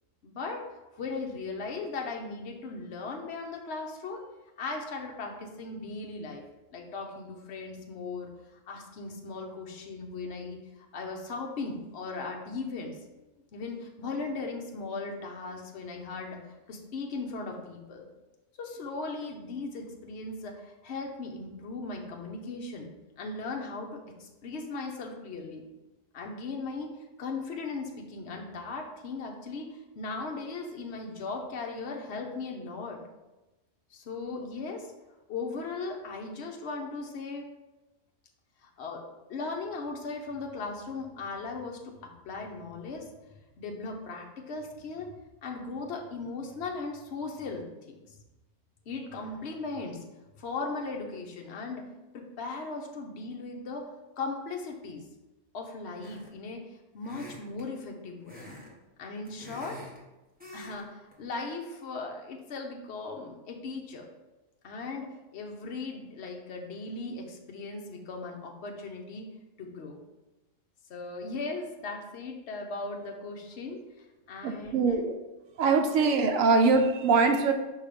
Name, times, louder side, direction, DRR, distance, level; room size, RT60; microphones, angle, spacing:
voice 1, 0.2-0.6 0.9-4.3 4.6-6.4 6.7-8.3 8.7-13.0 13.5-16.4 16.7-18.1 18.6-25.6 26.1-26.9 27.2-33.0 33.9-34.9 35.3-37.5 38.6-43.1 43.6-45.1 45.4-48.0 48.9-50.1 50.4-51.8 52.1-55.0 55.5-56.6 56.9-58.4 59.0-59.8 60.5-64.1 64.6-69.3 69.6-70.0 70.9-75.0, left 3 dB, 60° left, 1 dB, 1.1 m, -38 dB
sound 1, 56.0-56.4 57.0-57.7 58.3-58.7 59.0-60.0 60.4-60.8 61.1-61.3, left 1 dB, 5° right, 1.2 m, -46 dB
voice 2, 74.4-75.1 75.6-77.5, right 4 dB, 85° right, 4 dB, 1.0 m, -23 dB
5.5 x 3.5 x 5.1 m, 1.0 s
omnidirectional pair, 1.4 m